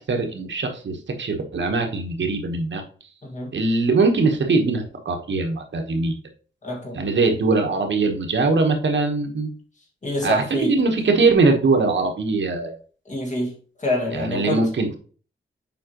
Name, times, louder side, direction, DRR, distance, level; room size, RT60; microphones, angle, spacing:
voice 1, 0.0-2.8 3.5-6.1 6.9-9.6 10.2-12.7 14.1-15.0, right 3 dB, 65° right, 1.2 m, -21 dB
voice 2, 6.6-7.0 10.0-10.7 13.1-14.7, left 1 dB, 35° left, 1.8 m, -26 dB
7.5 x 4.7 x 3.0 m
wide cardioid pair, 180°, 21 cm